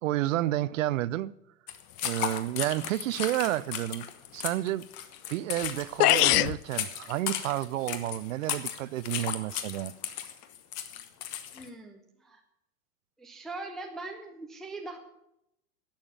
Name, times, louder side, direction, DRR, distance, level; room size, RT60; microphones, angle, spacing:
voice 1, 0.0-1.3 2.0-4.1 4.3-4.8 5.3-9.9, right 15 dB, 55° right, 0.5 m, -30 dB
sound 1, 1.7-11.7, left 10 dB, 40° left, 1.3 m, -36 dB
sound 2, 5.6-5.7 6.0-6.6, left 15 dB, 75° left, 0.6 m, -21 dB
voice 2, 11.5-12.4 13.2-15.0, right 2 dB, ahead, 0.4 m, -41 dB
11.5 x 6.7 x 8.8 m
hypercardioid pair, 130°, 47 cm